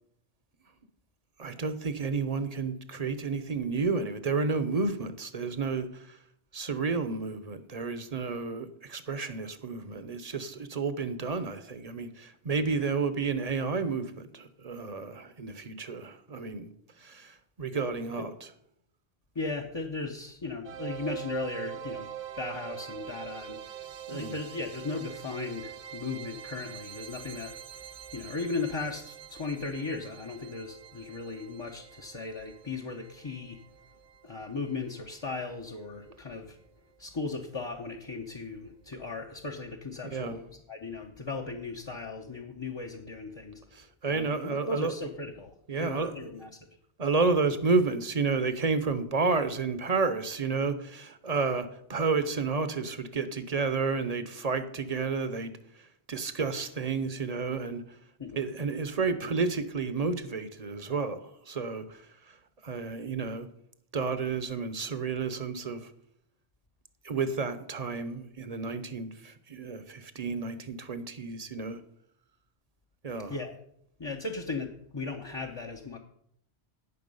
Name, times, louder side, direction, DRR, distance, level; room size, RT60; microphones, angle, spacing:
voice 1, 1.4-6.2 6.5-16.7 17.0-18.3 24.1-24.3 40.0-40.3 43.7-44.9 45.7-46.1 47.0-55.5 56.1-57.8 58.3-62.0 62.6-63.5 63.9-65.9 67.0-71.8 73.0-73.3, right 4 dB, 40° right, 0.9 m, -31 dB
voice 2, 19.3-22.1 22.4-27.5 28.1-33.6 34.2-36.6 37.0-43.6 44.1-45.5 45.8-46.7 58.2-58.4 73.3-73.5 74.0-76.0, left 3 dB, 30° left, 0.8 m, -37 dB
sound 1, 20.6-35.6, right 11 dB, 80° right, 1.0 m, -44 dB
16.5 x 5.9 x 5.4 m
omnidirectional pair, 1.1 m